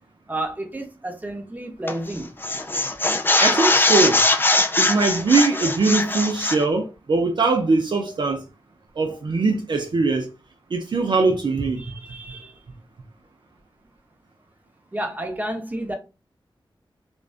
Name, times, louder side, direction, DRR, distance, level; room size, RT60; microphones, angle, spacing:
voice 1, 0.3-2.3 11.8-12.6 14.9-15.9, right 1 dB, 20° right, 0.7 m, -31 dB
sound 1, 1.9-2.1 2.4-6.6, left 2 dB, 25° left, 0.4 m, -21 dB
voice 2, 3.4-4.2 4.8-8.4 9.0-10.3 10.7-11.8, right 3 dB, 60° right, 0.4 m, -21 dB
2.5 x 2.1 x 2.3 m
wide cardioid pair, 75°, 9 cm